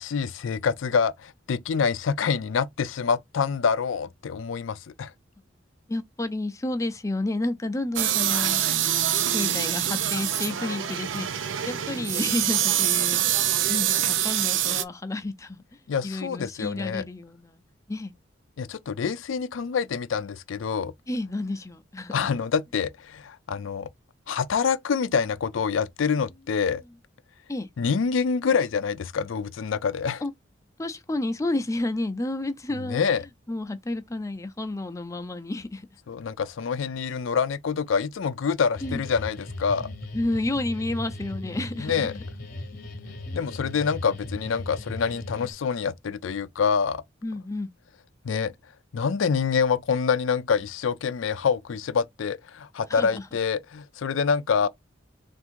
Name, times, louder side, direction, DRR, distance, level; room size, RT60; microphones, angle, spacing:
voice 1, 0.0-5.1 15.9-17.0 18.6-20.9 22.1-23.9 24.3-26.8 27.8-30.2 32.8-33.2 36.1-39.9 41.8-42.1 43.3-47.0 48.2-48.5 48.9-54.7, left 6 dB, 85° left, 0.4 m, -26 dB
voice 2, 5.9-8.9 9.3-15.6 16.0-17.6 17.9-18.1 21.1-22.2 27.5-27.7 30.2-30.3 30.8-33.0 33.5-35.9 38.8-39.0 40.1-42.2 47.2-47.7 52.9-53.2, left 2 dB, 15° left, 0.5 m, -31 dB
sound 1, 8.0-14.8, right 11 dB, 75° right, 0.5 m, -25 dB
sound 2, 38.8-45.5, left 2 dB, 50° left, 0.9 m, -37 dB
3.5 x 2.6 x 4.5 m
head